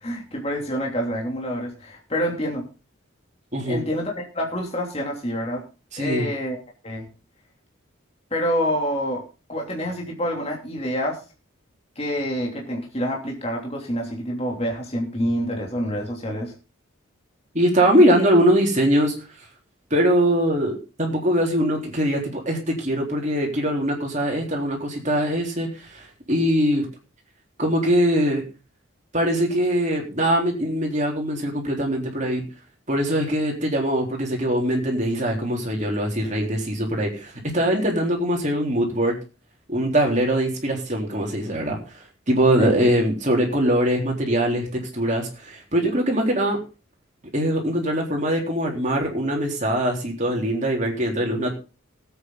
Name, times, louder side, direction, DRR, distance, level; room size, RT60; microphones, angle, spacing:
voice 1, 0.0-2.7 3.7-5.6 6.0-6.6 6.8-7.0 8.3-9.2 9.5-11.2 12.0-16.5 42.6-42.7, equal, 30° left, 0 dB, 3.0 m, -27 dB
voice 2, 3.5-3.8 5.9-6.3 17.5-19.1 19.9-26.9 27.6-28.4 29.1-32.4 32.9-39.2 39.7-46.6 47.3-51.5, equal, 35° right, 0 dB, 3.8 m, -22 dB
19.0 x 8.8 x 3.9 m, 0.32 s
head